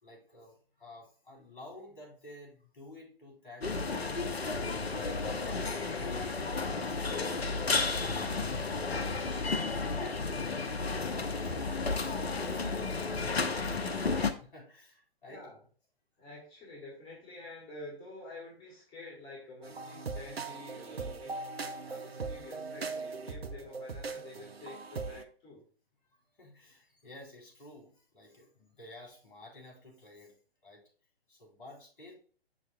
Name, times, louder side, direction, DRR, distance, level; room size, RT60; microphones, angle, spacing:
voice 1, 0.0-8.2 8.4-8.8 9.4-10.6 10.9-12.6 12.9-14.1 14.4-15.5 26.3-30.8 31.3-32.1, left 1 dB, 55° left, -1 dB, 3.4 m, -53 dB
sound 1, 3.6-14.3, left 4 dB, 80° left, 0.8 m, -32 dB
voice 2, 15.3-15.6 16.2-21.4 21.8-25.6, left 2 dB, 15° left, -4 dB, 1.7 m, -48 dB
sound 2, 19.6-25.2, right 4 dB, 80° right, 0.7 m, -40 dB
7.3 x 6.3 x 2.2 m, 0.41 s
figure-of-eight pair, 125°, 31 cm